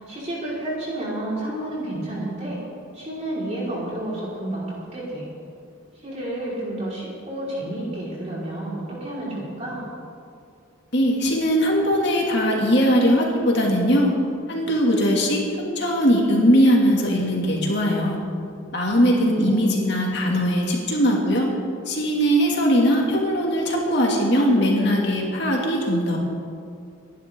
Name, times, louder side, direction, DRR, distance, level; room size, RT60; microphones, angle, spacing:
voice 1, 0.0-2.6 2.9-5.3 6.0-9.8 18.7-19.8, right 1 dB, 30° right, -7 dB, 5.1 m, -31 dB
voice 2, 10.9-14.1 14.5-18.2 18.7-21.5 21.9-26.2, equal, 55° left, -2 dB, 2.7 m, -20 dB
28.0 x 11.5 x 3.9 m, 2.3 s
head